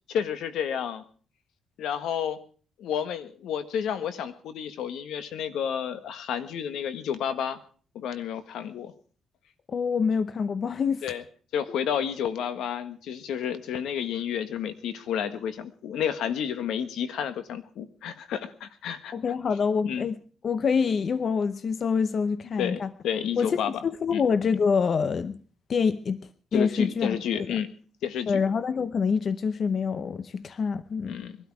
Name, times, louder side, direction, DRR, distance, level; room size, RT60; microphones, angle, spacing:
voice 1, 0.1-1.0 1.8-2.4 2.8-7.6 7.9-8.9 11.0-11.2 11.5-19.1 19.8-20.1 22.6-23.8 24.1-24.2 26.5-27.7 28.0-28.4 31.0-31.4, left 8 dB, 85° left, 11 dB, 1.5 m, -31 dB
voice 2, 9.7-11.0 19.1-20.2 20.4-22.9 23.4-25.4 25.7-26.2 26.5-27.6 28.3-31.2, left 5 dB, 45° left, 14 dB, 0.7 m, -26 dB
21.5 x 12.5 x 4.8 m, 0.43 s
cardioid pair, 105°, 0 cm